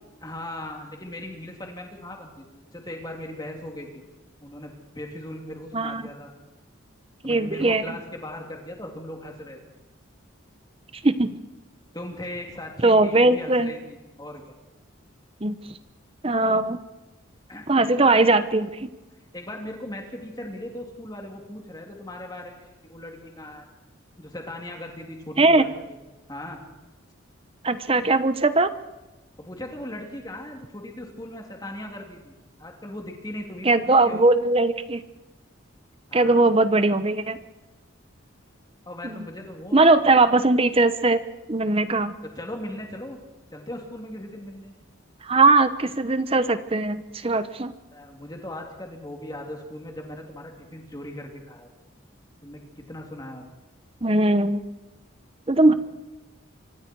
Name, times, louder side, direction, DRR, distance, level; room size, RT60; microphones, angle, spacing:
voice 1, 0.2-4.0 4.4-6.3 7.2-9.6 11.9-14.5 17.5-17.7 18.0-18.3 19.3-23.7 24.2-26.0 26.3-26.6 29.4-32.3 32.6-34.3 36.1-36.4 38.8-40.1 42.4-43.2 43.5-44.7 47.9-51.7 52.4-53.5 55.7-55.8, left 1 dB, 20° left, 1 dB, 3.3 m, -38 dB
voice 2, 7.2-7.8 11.0-11.3 12.8-13.7 15.4-15.6 16.2-16.8 17.7-18.9 25.4-25.6 27.6-28.7 33.6-35.0 36.1-37.4 39.0-39.3 39.7-41.2 41.5-42.1 45.2-47.7 54.0-54.6 55.5-55.7, right 2 dB, 30° right, 12 dB, 0.9 m, -20 dB
26.0 x 24.0 x 4.7 m, 1.1 s
head